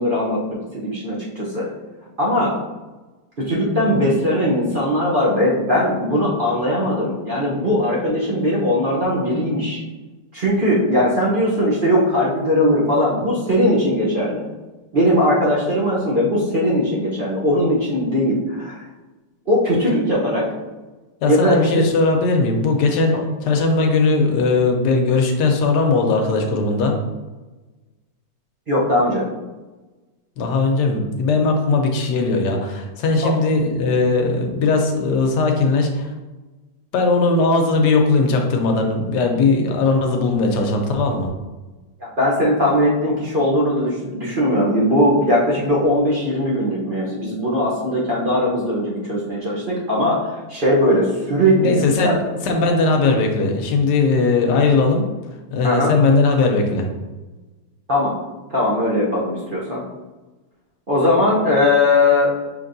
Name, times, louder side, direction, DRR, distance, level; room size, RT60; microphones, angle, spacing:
voice 1, 0.0-1.7 2.2-2.5 3.4-9.8 10.3-14.5 14.9-18.8 19.5-20.5 21.3-21.7 23.1-23.2 28.7-29.2 33.2-33.3 42.0-52.2 55.6-55.9 57.9-58.1 58.5-59.8 60.9-62.3, left 1 dB, 45° right, -6 dB, 0.7 m, -19 dB
voice 2, 21.2-23.1 23.4-27.0 30.4-36.1 36.9-41.3 51.6-52.2 52.4-55.0 55.5-56.9, left 3 dB, 85° left, 3 dB, 1.3 m, -18 dB
5.9 x 3.3 x 2.6 m, 1.2 s
omnidirectional pair, 1.8 m